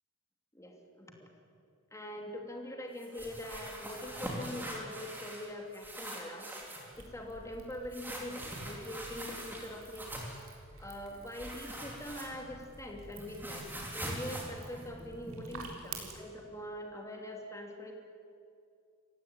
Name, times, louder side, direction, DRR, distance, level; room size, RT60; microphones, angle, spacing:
voice 1, 0.5-1.3 1.9-6.5 7.0-10.3 10.8-17.9, left 1 dB, 15° left, 2 dB, 2.8 m, -43 dB
sound 1, 3.0-5.5 5.7-6.9 7.9-10.4 11.3-12.6 12.9-15.6, right 1 dB, 10° right, 3.9 m, -43 dB
sound 2, 6.9-16.1, right 4 dB, 80° right, 4.2 m, -50 dB
28.0 x 16.5 x 9.0 m, 2.4 s
head